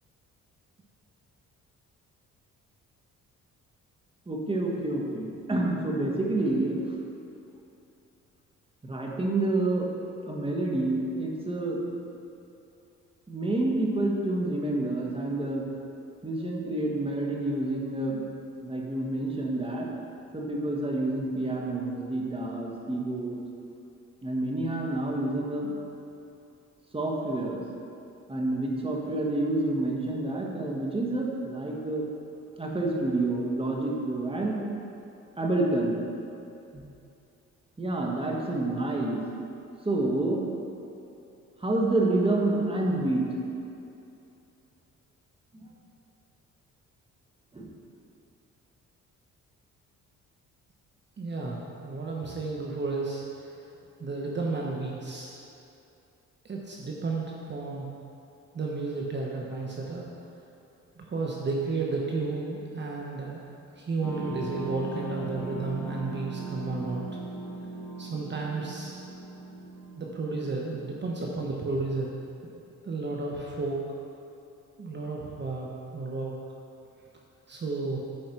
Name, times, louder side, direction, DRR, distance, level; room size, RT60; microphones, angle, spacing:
voice 1, 4.3-7.0 8.8-9.9 10.3-11.8 13.3-15.7 16.2-18.3 18.6-19.9 20.3-23.4 24.2-25.8 26.9-27.6 28.3-32.0 32.6-34.6 35.4-36.0 36.7-36.8 37.8-39.2 39.8-40.5 41.6-43.3 45.6-45.7 47.5-47.7, right 2 dB, 20° right, -1 dB, 1.5 m, -28 dB
voice 2, 51.2-53.6 54.0-55.4 56.4-57.9 58.5-60.1 61.0-63.4 63.7-67.0 68.0-69.0 70.0-72.1 72.8-74.0 74.8-76.3 77.5-78.0, right 3 dB, 35° right, -2 dB, 1.1 m, -32 dB
sound 1, 64.0-71.5, right 3 dB, 5° left, 1.8 m, -39 dB
9.2 x 4.7 x 6.1 m, 2.7 s
cardioid pair, 90°, 30 cm